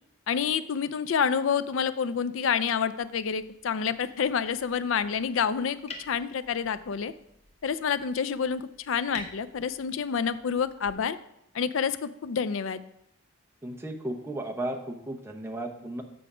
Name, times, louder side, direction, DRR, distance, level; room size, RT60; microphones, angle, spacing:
voice 1, 0.3-5.8 6.0-7.1 7.6-11.2 11.5-12.8, left 6 dB, 65° left, 14 dB, 0.4 m, -28 dB
sound 1, 2.9-10.9, left 2 dB, 30° left, 1.1 m, -49 dB
voice 2, 13.6-16.0, right 1 dB, 10° right, 2 dB, 0.8 m, -34 dB
7.8 x 6.0 x 4.9 m, 0.80 s
head